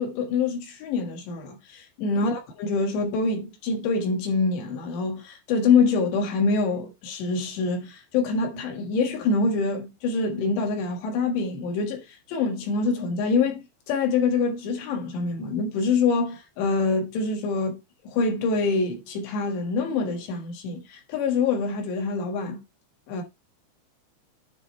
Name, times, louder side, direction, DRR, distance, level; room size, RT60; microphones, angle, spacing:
voice 1, 0.0-22.6 23.1-23.2, left 4 dB, 65° left, 3.6 m, -25 dB
10.0 x 4.2 x 4.5 m
omnidirectional pair, 5.9 m